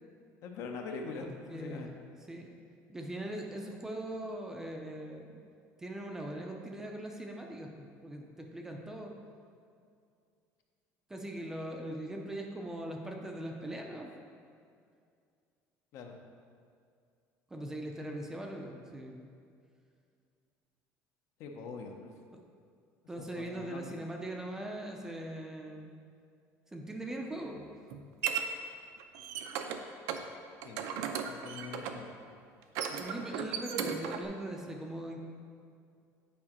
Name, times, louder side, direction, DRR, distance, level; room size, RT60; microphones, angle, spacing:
voice 1, 0.4-1.9 15.9-16.2 21.4-22.1 23.2-24.0 30.6-30.8 31.3-32.1, left 4 dB, 55° left, 3 dB, 0.6 m, -43 dB
voice 2, 1.2-1.9 2.3-2.5 2.9-5.4 5.8-9.1 11.1-14.1 17.5-19.3 22.3-22.4 23.1-25.9 26.7-27.6 33.0-35.2, right 1 dB, 10° right, 1 dB, 0.4 m, -41 dB
sound 1, 27.4-28.4 29.0-29.8 30.1-30.2 30.6-32.1 32.6-34.3, right 8 dB, 75° right, 0.4 m, -36 dB
8.5 x 4.8 x 2.9 m, 2.3 s
cardioid pair, 175°, 6 cm